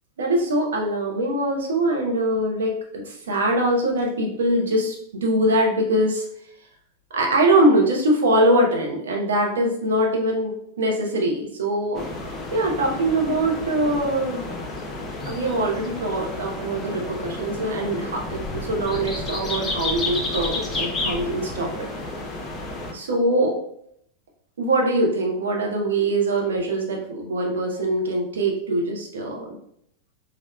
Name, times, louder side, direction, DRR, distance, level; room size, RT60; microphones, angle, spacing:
voice 1, 0.2-5.0 5.2-6.2 7.1-12.1 12.5-14.4 15.3-21.9 22.9-23.5 24.6-29.6, right 1 dB, 65° right, 0 dB, 0.8 m, -23 dB
sound 1, 11.9-22.9, left 2 dB, 15° left, 0.6 m, -31 dB
4.2 x 2.6 x 2.2 m, 0.71 s
figure-of-eight pair, 90°, 0 cm